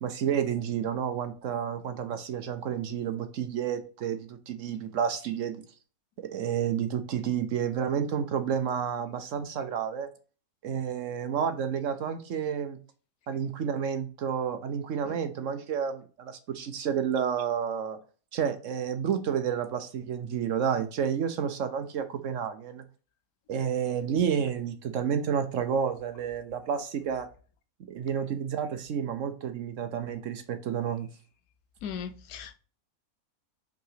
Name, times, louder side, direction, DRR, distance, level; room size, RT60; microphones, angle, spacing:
voice 1, 0.0-5.6 6.2-10.1 10.6-12.8 13.3-18.0 18.3-22.8 23.5-27.3 27.9-31.1, right 8 dB, 65° right, 1.0 m, -30 dB
voice 2, 31.8-32.6, left 7 dB, 90° left, 1.2 m, -37 dB
5.5 x 3.9 x 5.7 m
omnidirectional pair, 1.6 m